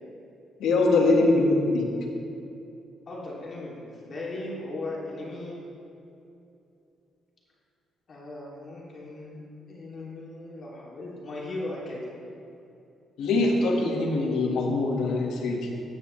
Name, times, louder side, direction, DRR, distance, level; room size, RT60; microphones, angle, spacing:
voice 1, 0.6-1.9 13.2-15.7, left 2 dB, 80° left, 0 dB, 1.7 m, -23 dB
voice 2, 3.1-5.6 8.1-9.4 9.7-12.1, left 2 dB, 45° left, -4 dB, 2.9 m, -37 dB
14.0 x 9.7 x 3.3 m, 2.7 s
cardioid pair, 90°, 0 cm